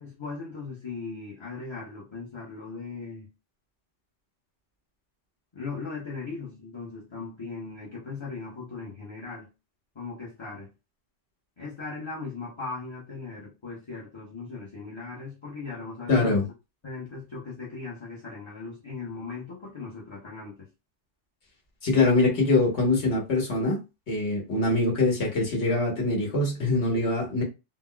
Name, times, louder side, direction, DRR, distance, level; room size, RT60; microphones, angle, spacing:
voice 1, 0.0-3.3 5.5-9.5 9.9-10.7 11.6-16.4 16.8-20.7, left 4 dB, 30° left, 0.7 m, -38 dB
voice 2, 16.1-16.4 21.8-23.8 24.1-27.4, left 2 dB, 60° left, 1.4 m, -23 dB
3.9 x 2.1 x 2.2 m
omnidirectional pair, 1.3 m